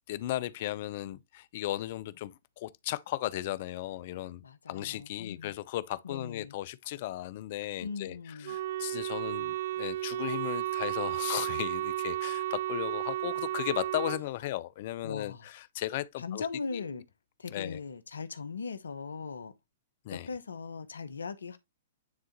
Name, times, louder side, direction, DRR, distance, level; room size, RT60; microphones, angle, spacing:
voice 1, 0.1-4.4 4.7-16.5 16.7-16.8 17.5-17.8 20.0-20.3, left 14 dB, 50° left, 0.6 m, -36 dB
voice 2, 4.4-5.5 6.0-6.5 7.8-8.6 15.0-15.5 16.2-17.0 17.4-19.5 20.1-21.6, left 5 dB, 80° left, 0.8 m, -39 dB
Wind instrument woodwind instrument, 8.4-14.2, right 14 dB, 60° right, 0.4 m, -33 dB
9.5 x 3.7 x 2.9 m
hypercardioid pair, 115°, 0 cm